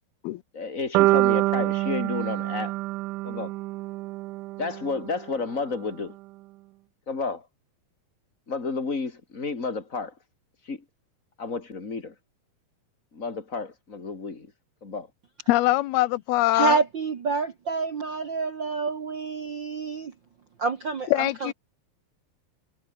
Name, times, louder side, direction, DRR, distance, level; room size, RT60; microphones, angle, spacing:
voice 1, 0.5-2.7 3.2-3.5 4.6-6.2 7.1-7.5 8.5-10.1 10.6-10.8 11.4-12.1 13.1-14.5 14.8-15.1, left 4 dB, 20° left, 3.1 m, -31 dB
sound 1, 1.0-5.1, right 19 dB, 85° right, 1.8 m, -25 dB
voice 2, 15.5-16.8 21.1-21.5, left 17 dB, 85° left, 2.9 m, -23 dB
voice 3, 16.5-20.1 20.6-21.5, right 4 dB, 65° right, 1.1 m, -27 dB
omnidirectional pair, 4.3 m